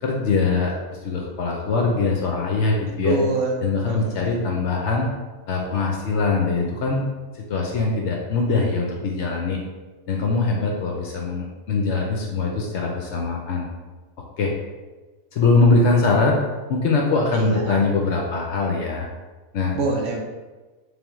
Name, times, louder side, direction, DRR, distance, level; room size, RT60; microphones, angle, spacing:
voice 1, 0.0-3.2 3.6-5.1 5.5-7.1 7.3-9.6 10.1-13.7 14.4-14.5 15.3-16.4 16.7-19.1 19.5-19.8, left 3 dB, 65° left, 0 dB, 0.7 m, -22 dB
voice 2, 3.0-3.5 3.9-4.4 17.3-17.8 19.7-20.2, right 3 dB, 65° right, 0 dB, 0.9 m, -25 dB
3.5 x 3.5 x 3.0 m, 1.2 s
omnidirectional pair, 1.5 m